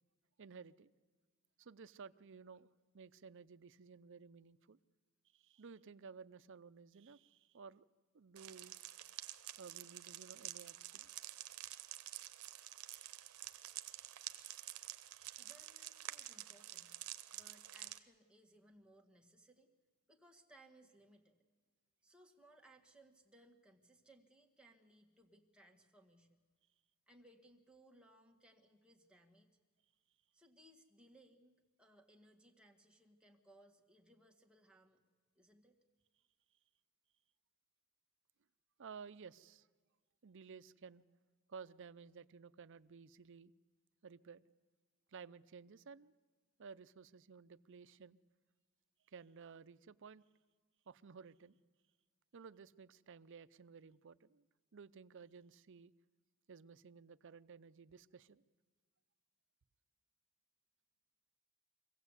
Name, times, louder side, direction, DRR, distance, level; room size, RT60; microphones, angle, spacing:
voice 1, 0.4-0.9 1.6-4.8 5.3-7.9 8.1-11.1 12.8-13.2 13.8-14.2 14.6-15.4 38.8-39.7 40.2-41.0 41.5-43.5 44.0-44.4 45.1-46.1 46.6-48.2 49.1-50.2 50.9-51.6 52.3-54.4 54.7-55.9 56.5-58.4, right 5 dB, 55° right, 15 dB, 0.5 m, -56 dB
sound 1, 8.4-18.0, right 14 dB, 80° right, 0.8 m, -49 dB
voice 2, 15.4-17.0 17.3-19.7 20.1-21.4 22.0-26.4 27.1-29.6 30.3-35.0 35.4-35.8, right 1 dB, 5° right, 0 dB, 1.8 m, -65 dB
24.5 x 16.5 x 8.2 m, 1.5 s
head